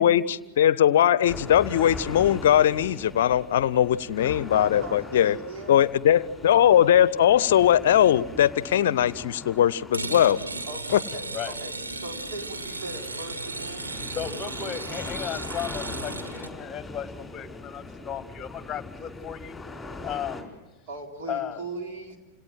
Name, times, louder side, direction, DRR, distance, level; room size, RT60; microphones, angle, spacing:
voice 1, 0.0-5.3 5.7-10.4 10.9-11.0, left 10 dB, 55° left, 21 dB, 0.7 m, -20 dB
sound 1, 1.3-20.4, left 3 dB, 5° left, 4.7 m, -41 dB
voice 2, 4.5-5.8 10.7-11.7 12.0-13.9 20.9-22.2, right 3 dB, 50° right, 3 dB, 3.7 m, -39 dB
sound 2, 9.9-16.5, right 3 dB, 80° right, 1.4 m, -35 dB
voice 3, 14.1-19.6 20.0-20.5 21.3-21.6, left 9 dB, 25° left, 13 dB, 1.4 m, -35 dB
28.5 x 18.0 x 7.6 m, 1.2 s
figure-of-eight pair, 90°, 0 cm